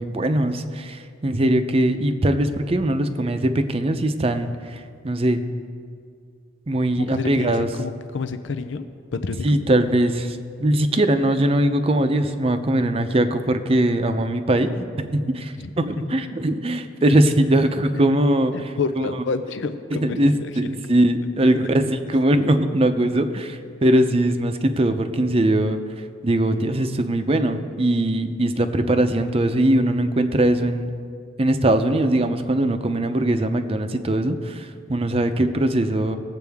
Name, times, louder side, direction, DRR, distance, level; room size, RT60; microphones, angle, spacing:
voice 1, 0.0-5.4 6.7-7.7 9.4-19.0 19.9-25.8 26.2-30.9 31.4-36.2, right 1 dB, 30° right, 8 dB, 0.6 m, -21 dB
voice 2, 7.0-8.8 9.1-9.6 15.6-15.7 16.0-16.2 18.5-20.7 21.4-21.6, left 4 dB, 90° left, 9 dB, 0.5 m, -29 dB
20.0 x 7.6 x 3.5 m, 2.2 s
head